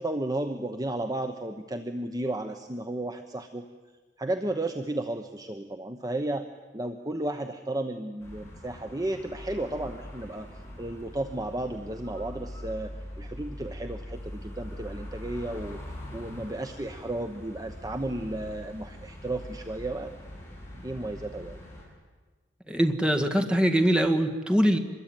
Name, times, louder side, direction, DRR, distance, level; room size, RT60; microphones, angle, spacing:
voice 1, 0.0-3.7 4.2-6.5 6.7-10.5 10.8-12.9 13.2-15.8 16.1-20.1 20.7-21.6, right 1 dB, 20° right, 7 dB, 1.0 m, -33 dB
sound 1, 8.2-21.8, left 1 dB, 15° left, 7.8 m, -42 dB
voice 2, 22.7-24.8, equal, 5° right, 4 dB, 2.0 m, -23 dB
25.5 x 22.0 x 9.1 m, 1.4 s
head